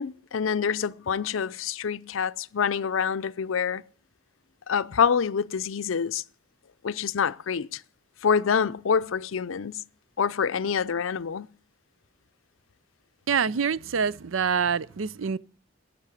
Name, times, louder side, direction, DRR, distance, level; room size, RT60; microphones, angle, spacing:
voice 1, 0.0-3.8 4.7-6.2 6.8-7.8 8.2-9.8 10.2-11.5, left 6 dB, 90° left, 0.5 m, -26 dB
voice 2, 13.3-15.4, right 6 dB, 90° right, 0.5 m, -26 dB
11.5 x 7.7 x 9.8 m
head